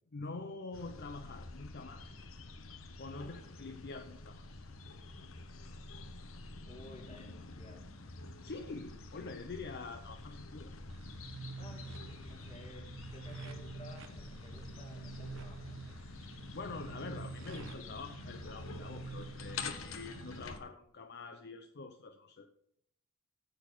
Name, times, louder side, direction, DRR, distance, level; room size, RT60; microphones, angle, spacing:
voice 1, 0.1-2.2 3.0-4.7 8.4-10.7 16.5-22.5, left 3 dB, 55° left, 7 dB, 0.6 m, -46 dB
sound 1, 0.7-20.6, left 3 dB, 80° left, 1.0 m, -47 dB
voice 2, 3.0-3.3 6.7-7.9 11.4-16.0 17.1-18.0, left 1 dB, 30° left, 2 dB, 2.1 m, -55 dB
sound 2, 10.9-20.4, right 4 dB, 75° right, 1.0 m, -48 dB
9.1 x 7.2 x 5.9 m, 0.70 s
head